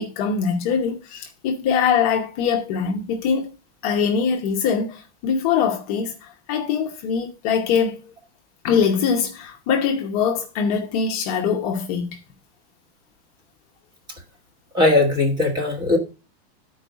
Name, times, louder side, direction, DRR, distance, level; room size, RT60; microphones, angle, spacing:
voice 1, 0.0-3.5 3.8-8.1 8.6-12.2, left 6 dB, 35° left, 0.9 m, -23 dB
voice 2, 14.7-16.0, left 2 dB, 15° right, 1.5 m, -19 dB
11.0 x 4.7 x 5.0 m
supercardioid pair, 175°, 33 cm